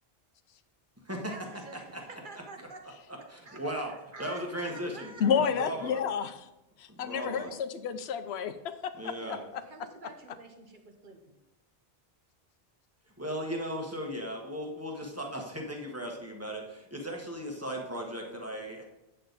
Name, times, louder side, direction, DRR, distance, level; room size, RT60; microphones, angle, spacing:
voice 1, 1.3-2.8 3.4-5.2 5.8-6.3 7.0-7.5 9.2-11.4, right 3 dB, 50° right, 4 dB, 1.2 m, -48 dB
voice 2, 3.3-3.9 4.2-6.0 6.9-7.5 9.0-9.4 13.2-18.8, equal, 15° right, 0 dB, 1.3 m, -37 dB
voice 3, 5.2-6.4 6.8-9.6, left 7 dB, 85° left, 11 dB, 0.9 m, -30 dB
8.6 x 6.7 x 4.0 m, 0.93 s
omnidirectional pair, 1.1 m